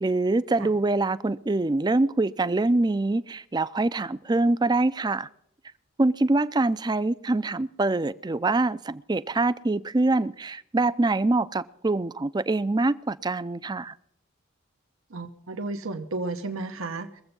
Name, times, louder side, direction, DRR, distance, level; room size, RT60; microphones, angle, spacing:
voice 1, 0.0-5.3 6.0-13.9, right 2 dB, 20° right, 0.4 m, -24 dB
voice 2, 15.1-17.2, right 3 dB, 85° right, 0.9 m, -33 dB
23.0 x 8.0 x 5.4 m
head